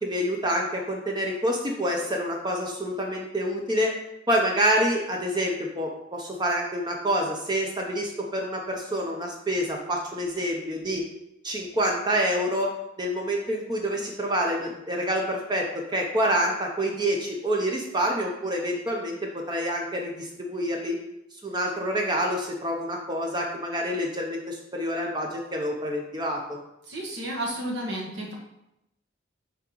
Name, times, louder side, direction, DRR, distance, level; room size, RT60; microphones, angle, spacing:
voice 1, 0.0-3.9 4.3-11.0 11.4-12.7 13.0-21.0 21.4-26.6, equal, 20° right, 0 dB, 0.6 m, -27 dB
voice 2, 26.9-28.3, right 1 dB, 60° right, -2 dB, 1.4 m, -32 dB
8.7 x 3.5 x 3.0 m, 0.87 s
head